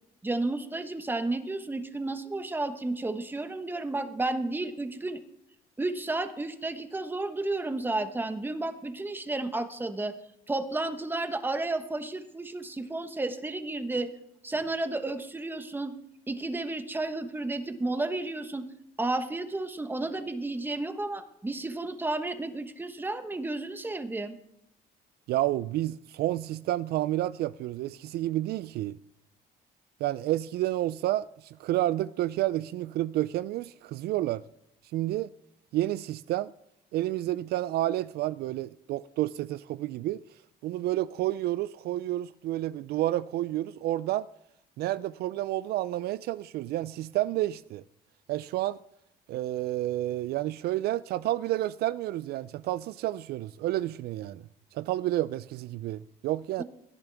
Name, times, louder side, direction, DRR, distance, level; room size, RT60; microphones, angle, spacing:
voice 1, 0.2-5.2 5.8-10.1 10.5-14.1 14.4-15.9 16.3-18.6 19.0-24.4 56.6-56.7, right 2 dB, 10° right, 1.1 m, -32 dB
voice 2, 25.3-29.0 30.0-34.4 34.9-35.3 35.7-36.5 36.9-40.2 40.6-44.3 44.8-47.8 48.3-48.8 49.3-54.4 54.7-56.6, right 15 dB, 70° right, 0.4 m, -30 dB
18.0 x 10.5 x 3.5 m
cardioid pair, 110°, 17 cm